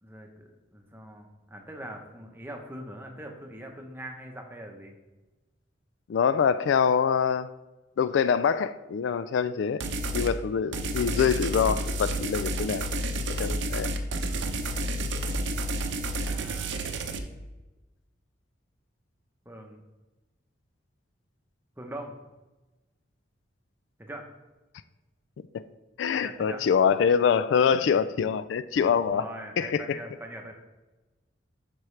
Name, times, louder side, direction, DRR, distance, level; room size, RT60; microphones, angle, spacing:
voice 1, 0.0-4.9 16.2-16.8 19.4-19.8 21.8-22.1 24.0-24.3 26.1-26.6 29.1-30.5, right 1 dB, 10° right, 0.8 m, -42 dB
voice 2, 6.1-7.5 8.0-9.8 10.1-12.8 13.3-13.9 25.5-25.6 26.0-29.2 29.6-30.0, left 7 dB, 70° left, 0.3 m, -25 dB
sound 1, 9.8-10.3 10.7-17.2, right 1 dB, 70° right, 0.7 m, -30 dB
10.0 x 6.1 x 3.2 m
head